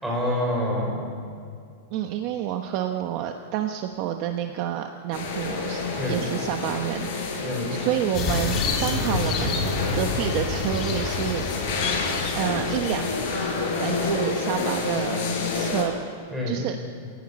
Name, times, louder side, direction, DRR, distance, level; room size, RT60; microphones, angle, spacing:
voice 1, 0.0-1.1 6.0-6.2 7.4-7.8 16.3-16.7, left 1 dB, 5° right, -3 dB, 5.0 m, -27 dB
voice 2, 1.9-7.4 7.7-11.5 12.3-13.1 13.8-15.2 15.5-15.9 16.5-16.8, right 10 dB, 35° right, 5 dB, 1.0 m, -29 dB
sound 1, 5.1-15.8, left 3 dB, 45° left, 5.8 m, -29 dB
sound 2, 8.1-13.9, left 4 dB, 25° left, 2.4 m, -29 dB
25.5 x 16.5 x 9.9 m, 2.3 s
supercardioid pair, 175°, 0 cm